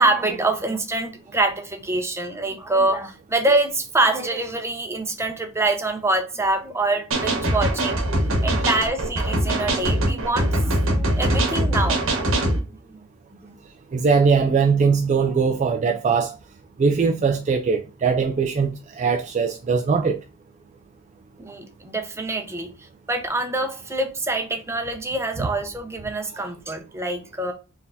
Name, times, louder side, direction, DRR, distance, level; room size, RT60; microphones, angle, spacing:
voice 1, 0.0-8.0 8.4-12.4 12.9-13.0 13.4-13.5 15.2-15.3 21.4-22.7 23.1-27.5, right 2 dB, 10° right, 0.8 m, -25 dB
sound 1, 7.1-12.6, right 1 dB, 65° right, 1.1 m, -22 dB
voice 2, 13.9-16.3 16.8-20.2, right 5 dB, 35° right, 0.3 m, -21 dB
4.5 x 3.4 x 2.6 m
head